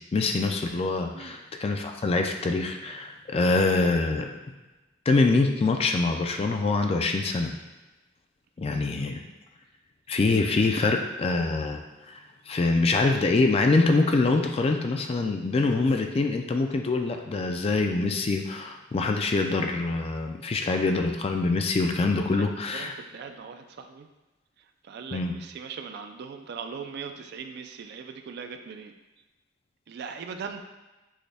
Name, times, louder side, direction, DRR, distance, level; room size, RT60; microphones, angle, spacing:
voice 1, 0.1-4.3 5.1-7.5 8.6-9.2 10.1-11.8 12.1-12.2 12.5-22.9 25.1-25.3, left 3 dB, 30° left, 4 dB, 0.3 m, -24 dB
voice 2, 22.7-24.1 24.8-28.9 29.9-30.6, right 6 dB, 55° right, 6 dB, 0.3 m, -39 dB
6.2 x 2.2 x 3.4 m, 1.1 s
head